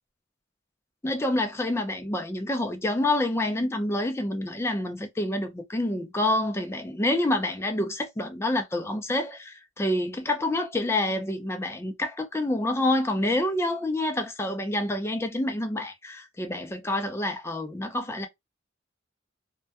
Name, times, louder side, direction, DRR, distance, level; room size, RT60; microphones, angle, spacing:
voice 1, 1.0-18.3, left 1 dB, 15° left, 0.4 m, -27 dB
2.2 x 2.1 x 2.7 m
head